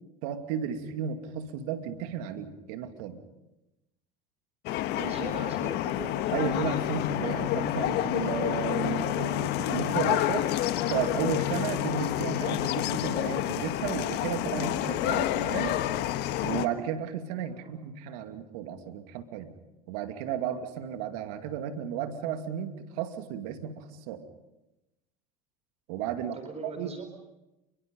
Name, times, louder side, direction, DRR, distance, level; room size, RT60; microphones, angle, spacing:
voice 1, 0.2-3.2 5.0-5.1 6.3-10.5 10.9-15.8 16.4-19.5 19.9-24.2 25.9-26.9, right 9 dB, 70° right, 7 dB, 2.5 m, -34 dB
sound 1, 4.7-16.7, left 13 dB, 60° left, 1.4 m, -29 dB
voice 2, 4.9-6.3 17.5-17.7 26.3-27.1, right 3 dB, 35° right, 7 dB, 4.3 m, -41 dB
28.5 x 23.0 x 5.4 m, 0.97 s
hypercardioid pair, 80°, 19 cm